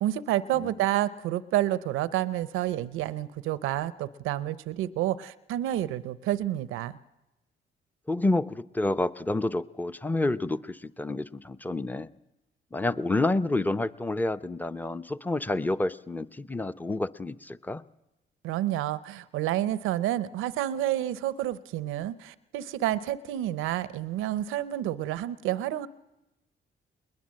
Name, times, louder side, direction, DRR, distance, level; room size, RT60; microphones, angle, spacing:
voice 1, 0.0-7.0 18.4-25.9, right 13 dB, 90° right, 16 dB, 0.7 m, -29 dB
voice 2, 8.1-12.1 12.7-17.8, left 2 dB, 10° left, 14 dB, 0.8 m, -29 dB
21.0 x 20.5 x 7.5 m, 0.98 s
supercardioid pair, 65°, 20 cm